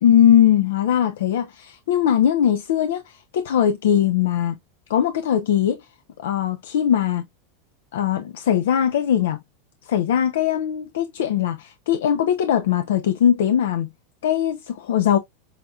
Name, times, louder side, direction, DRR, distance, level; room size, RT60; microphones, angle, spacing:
voice 1, 0.0-4.6 4.9-5.8 6.2-7.2 7.9-9.4 9.9-13.9 14.2-15.2, left 9 dB, 85° left, 0.5 m, -20 dB
5.7 x 2.3 x 2.3 m
supercardioid pair, 135°, 0 cm